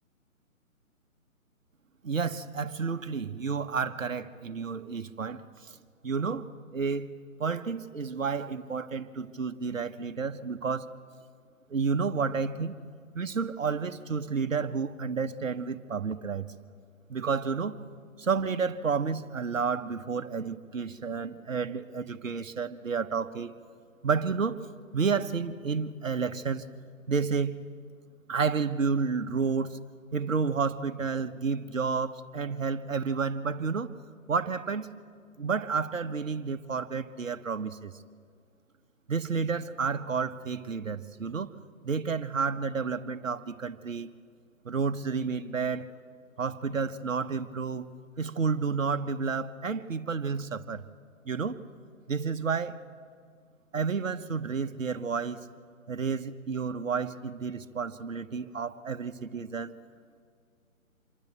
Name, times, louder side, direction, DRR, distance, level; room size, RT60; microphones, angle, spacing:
voice 1, 2.0-5.8 6.0-7.1 7.4-10.9 11.7-12.8 13.1-16.5 17.1-17.7 18.2-23.5 24.0-24.6 24.9-26.7 27.1-27.7 28.3-29.8 30.1-33.9 34.3-34.9 35.4-37.9 39.1-41.5 41.8-44.1 44.6-45.9 46.4-47.9 48.2-50.8 51.2-51.6 52.1-52.8 53.7-55.4 55.9-59.7, right 5 dB, 65° right, 9 dB, 1.1 m, -30 dB
26.0 x 12.0 x 9.2 m, 2.1 s
figure-of-eight pair, 140°, 42 cm